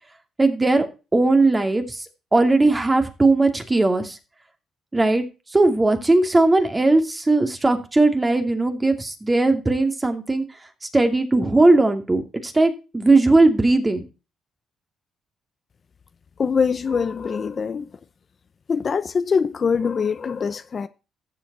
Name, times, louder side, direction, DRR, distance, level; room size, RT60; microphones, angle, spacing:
voice 1, 0.4-0.9 1.1-2.1 2.3-4.2 4.9-5.2 5.5-10.4 10.8-14.0, right 2 dB, 20° right, 2.5 m, -18 dB
voice 2, 16.4-17.9 18.7-20.9, left 6 dB, 45° left, 0.8 m, -23 dB
14.0 x 7.5 x 4.3 m
cardioid pair, 90°, 0 cm